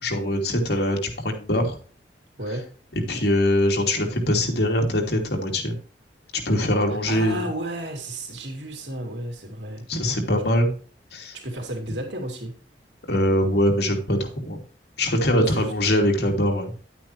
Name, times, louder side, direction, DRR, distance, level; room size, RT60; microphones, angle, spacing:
voice 1, 0.0-1.8 3.1-5.7 6.4-7.4 9.9-10.7 11.1-11.4 13.1-14.6 15.0-16.7, left 1 dB, 65° left, 1 dB, 2.8 m, -22 dB
voice 2, 2.4-2.7 7.1-9.9 11.3-12.5 15.3-15.7, right 1 dB, 85° right, 2 dB, 2.9 m, -32 dB
11.0 x 9.0 x 3.2 m, 0.40 s
head